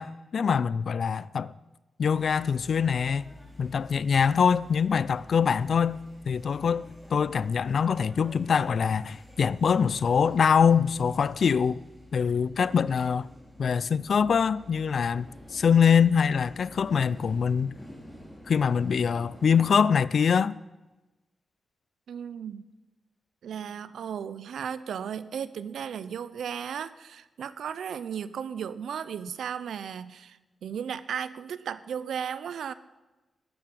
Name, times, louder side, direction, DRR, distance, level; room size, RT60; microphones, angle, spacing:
voice 1, 0.0-1.5 2.0-3.3 3.6-11.8 12.1-13.3 13.6-17.8 18.5-20.6, left 6 dB, 55° left, 0.4 m, -24 dB
sound 1, 2.1-19.8, left 1 dB, 5° left, 3.2 m, -49 dB
voice 2, 22.1-22.6 23.4-32.7, right 8 dB, 90° right, 0.7 m, -35 dB
12.5 x 10.5 x 7.5 m
wide cardioid pair, 150°, 0 cm